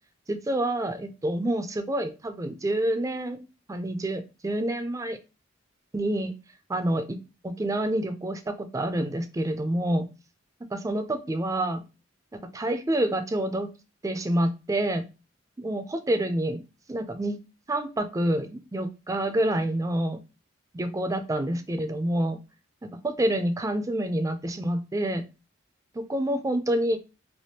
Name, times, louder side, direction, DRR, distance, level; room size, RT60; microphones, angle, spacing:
voice 1, 0.3-3.4 3.7-5.2 5.9-6.3 6.7-10.1 10.7-11.8 12.5-13.7 14.0-15.0 15.6-16.6 16.9-17.4 17.7-20.2 20.7-22.4 23.0-25.2 25.9-27.0, right 1 dB, 15° right, 9 dB, 0.4 m, -27 dB
3.4 x 3.0 x 2.7 m, 0.29 s
head